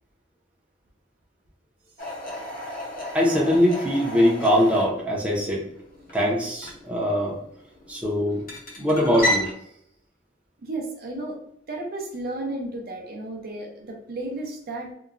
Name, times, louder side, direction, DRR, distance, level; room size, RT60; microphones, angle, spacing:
sound 1, 2.0-9.5, left 1 dB, 45° left, 0.7 m, -33 dB
voice 1, 3.1-5.6 6.1-7.4 7.9-8.4 8.8-9.5, equal, 5° right, -4 dB, 0.5 m, -22 dB
voice 2, 10.6-11.4 11.7-14.9, right 2 dB, 50° right, 1 dB, 0.5 m, -33 dB
2.9 x 2.1 x 2.4 m, 0.69 s
head